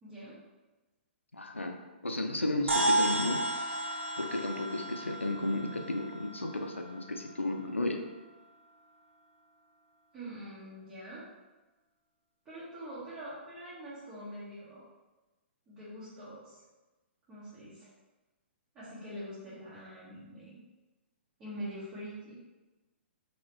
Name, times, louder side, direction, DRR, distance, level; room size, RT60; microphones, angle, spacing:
voice 1, 0.0-0.4 10.1-11.3 12.4-14.9 15.7-16.6 17.3-17.9 18.7-20.6 21.4-22.4, equal, 25° right, -12 dB, 1.1 m, -44 dB
voice 2, 1.3-1.7 2.0-3.4 4.2-8.0, left 1 dB, 90° left, 4 dB, 0.4 m, -33 dB
sound 1, 2.7-7.3, right 1 dB, 75° right, 0.7 m, -33 dB
3.0 x 2.8 x 2.9 m, 1.1 s
figure-of-eight pair, 115°, 6 cm